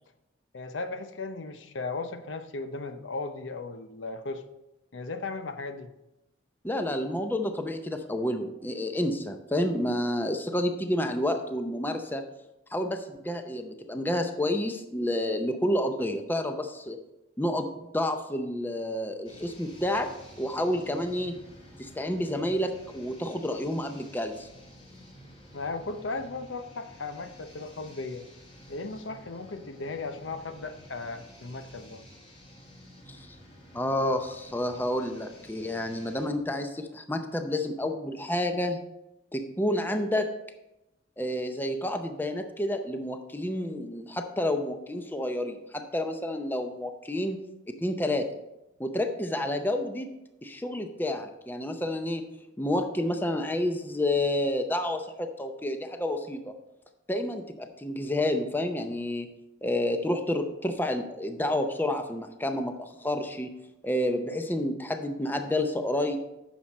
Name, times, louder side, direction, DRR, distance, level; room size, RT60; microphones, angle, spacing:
voice 1, 0.5-4.4 4.9-5.9 25.5-28.2 28.7-32.0, left 3 dB, 80° left, 9 dB, 0.7 m, -36 dB
voice 2, 6.6-12.2 12.7-17.0 17.4-20.1 20.4-21.4 21.8-24.5 33.1-33.3 33.7-38.8 39.3-40.3 41.2-47.4 47.7-48.2 48.8-50.1 50.4-52.2 52.6-56.5 57.1-59.3 59.6-63.5 63.8-66.2, left 1 dB, 10° left, 6 dB, 0.6 m, -29 dB
sound 1, 19.2-36.3, equal, 30° left, 2.3 m, -51 dB
9.2 x 6.4 x 4.2 m, 0.91 s
head